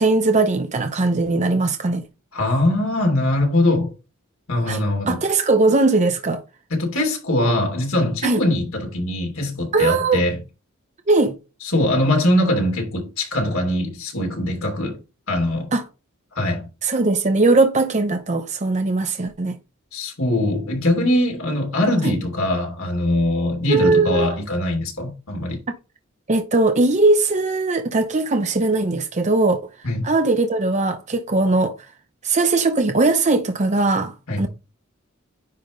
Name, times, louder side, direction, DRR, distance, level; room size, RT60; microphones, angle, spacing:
voice 1, 0.0-2.0 4.7-6.4 8.2-8.4 9.7-10.2 11.1-11.4 15.7-15.8 16.8-19.5 22.0-22.1 23.7-24.3 26.3-29.6 30.0-31.8 32.2-34.5, right 3 dB, 35° right, 0.7 m, -19 dB
voice 2, 2.3-3.9 4.5-5.2 6.7-10.4 11.6-15.0 15.3-15.7 16.3-16.7 19.9-25.6 29.8-30.1 34.3-34.5, left 1 dB, 75° left, 3.1 m, -22 dB
9.8 x 3.5 x 3.8 m
head